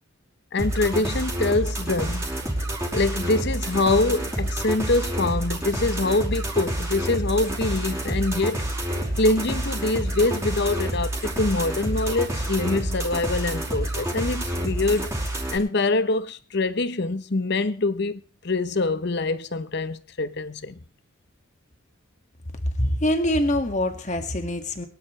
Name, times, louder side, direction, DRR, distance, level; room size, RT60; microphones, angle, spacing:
voice 1, 0.5-2.3 2.9-8.7 9.2-15.1 15.5-20.8, left 2 dB, 55° left, 0.9 m, -24 dB
sound 1, 0.6-15.6, right 1 dB, 15° right, 4.8 m, -28 dB
voice 2, 22.8-24.9, left 1 dB, 35° left, 2.0 m, -24 dB
23.0 x 12.0 x 3.3 m
head